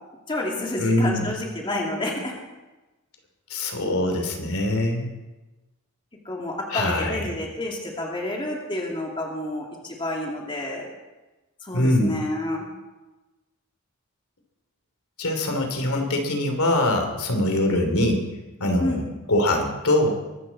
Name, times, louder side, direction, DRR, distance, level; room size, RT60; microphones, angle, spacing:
voice 1, 0.3-2.3 6.2-10.9 11.6-12.7 18.8-19.0, left 1 dB, 25° left, -1 dB, 2.6 m, -29 dB
voice 2, 0.8-1.3 3.5-5.1 6.7-7.3 11.7-12.3 15.2-18.3 18.6-19.0 19.3-20.2, left 1 dB, 80° left, 4 dB, 3.1 m, -23 dB
23.5 x 13.0 x 4.2 m, 1.1 s
head